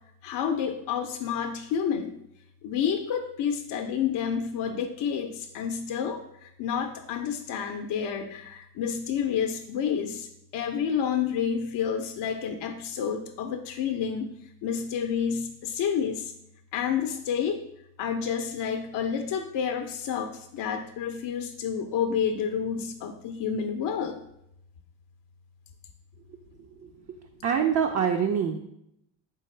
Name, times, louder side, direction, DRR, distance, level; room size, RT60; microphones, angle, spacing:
voice 1, 0.2-2.1 2.6-10.3 10.5-14.3 14.6-16.3 16.7-17.6 18.0-24.2, left 7 dB, 60° left, 5 dB, 0.5 m, -29 dB
voice 2, 27.4-28.6, right 7 dB, 35° right, 3 dB, 0.4 m, -24 dB
4.1 x 3.5 x 3.1 m, 0.78 s
supercardioid pair, 60°, 49 cm